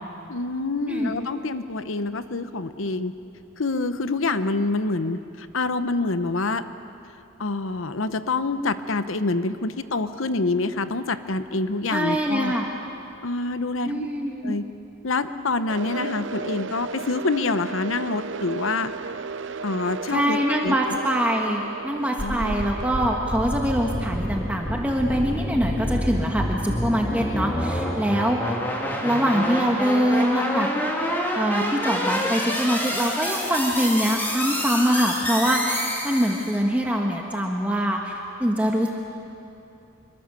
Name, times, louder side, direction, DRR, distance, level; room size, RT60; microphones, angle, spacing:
voice 1, 0.3-3.1 3.6-6.6 7.4-12.5 13.2-14.1 14.4-14.6 15.0-18.9 19.6-20.4 20.6-21.0 22.2-22.7, left 3 dB, 80° left, 11 dB, 0.9 m, -26 dB
voice 2, 11.9-12.7 13.8-14.5 15.9-16.0 20.1-28.6 29.0-30.7 31.3-38.9, equal, 5° right, 0 dB, 1.3 m, -24 dB
sound 1, 15.7-25.7, right 4 dB, 65° right, 0.6 m, -36 dB
sound 2, 22.2-36.6, equal, 10° left, 2.8 m, -28 dB
26.0 x 23.0 x 6.9 m, 2.8 s
head